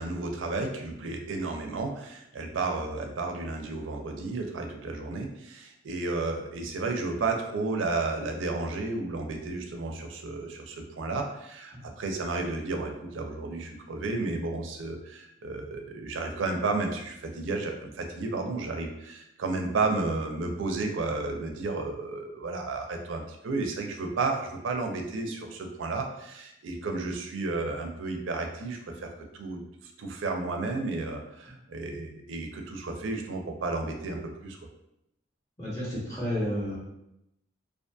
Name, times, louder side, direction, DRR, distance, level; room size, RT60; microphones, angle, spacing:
voice 1, 0.0-29.6 30.0-34.6, right 3 dB, 80° right, 3 dB, 0.4 m, -32 dB
voice 2, 35.6-36.8, equal, 20° left, -8 dB, 0.9 m, -31 dB
2.6 x 2.5 x 2.2 m, 0.82 s
head